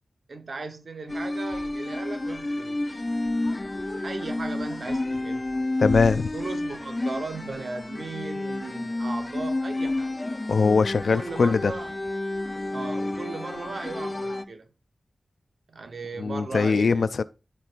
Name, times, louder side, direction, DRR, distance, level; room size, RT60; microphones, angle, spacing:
voice 1, 0.3-3.0 4.0-5.4 6.3-10.2 11.1-12.0 12.7-14.7 15.7-17.2, right 3 dB, 65° right, 0.9 m, -37 dB
sound 1, 1.1-14.4, left 2 dB, 30° left, 0.5 m, -30 dB
voice 2, 5.8-6.3 10.5-11.7 16.2-17.2, left 4 dB, 80° left, 0.3 m, -21 dB
13.0 x 4.6 x 2.5 m
wide cardioid pair, 95°, 0 cm